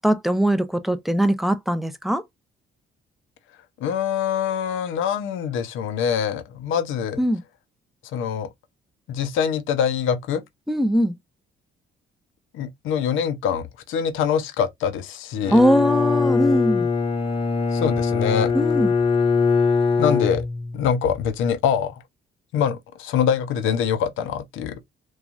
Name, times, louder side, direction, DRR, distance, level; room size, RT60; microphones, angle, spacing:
voice 1, 0.0-2.2 7.2-7.4 10.7-11.1 15.5-16.9 18.5-18.9, equal, ahead, 0.4 m, -20 dB
voice 2, 3.8-7.2 8.1-8.5 9.1-10.4 12.5-15.6 17.7-18.5 20.0-20.5 20.7-22.0 22.5-24.8, left 8 dB, 85° left, 0.5 m, -24 dB
Bowed string instrument, 15.4-20.9, left 5 dB, 30° left, 0.7 m, -22 dB
3.0 x 2.2 x 2.4 m
cardioid pair, 90°, 20 cm